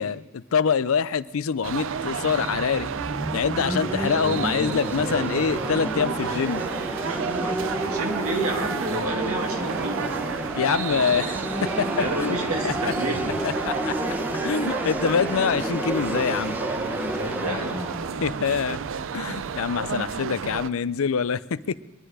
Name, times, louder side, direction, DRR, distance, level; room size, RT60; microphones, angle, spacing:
voice 1, 0.0-2.9 3.3-6.6 10.6-12.4 12.6-12.7 13.4-13.9 14.4-16.6 18.2-18.8 19.1-21.8, left 6 dB, 70° left, 17 dB, 0.5 m, -25 dB
sound 1, 1.6-20.7, right 6 dB, 65° right, 0.5 m, -32 dB
sound 2, 1.9-19.6, right 1 dB, 10° right, 0.9 m, -31 dB
voice 2, 7.1-10.1 12.0-13.4 17.1-17.8 19.7-20.1, right 2 dB, 85° right, 2 dB, 2.1 m, -31 dB
22.5 x 10.5 x 4.9 m, 1.0 s
head